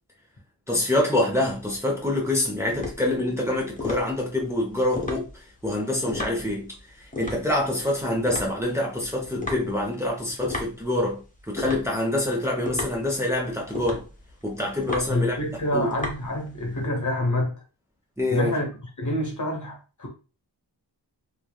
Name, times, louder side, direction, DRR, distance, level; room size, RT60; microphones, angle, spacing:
voice 1, 0.7-5.3 5.6-6.7 7.2-11.2 11.5-14.1 14.4-15.4 15.7-15.9 18.2-18.5, left 1 dB, 5° right, 0.8 m, -25 dB
sound 1, 1.3-16.8, left 3 dB, 20° left, 1.0 m, -36 dB
voice 2, 15.1-17.6 18.3-18.7 19.0-20.1, left 1 dB, 45° left, 1.1 m, -27 dB
3.3 x 2.3 x 2.3 m
wide cardioid pair, 45°, 43 cm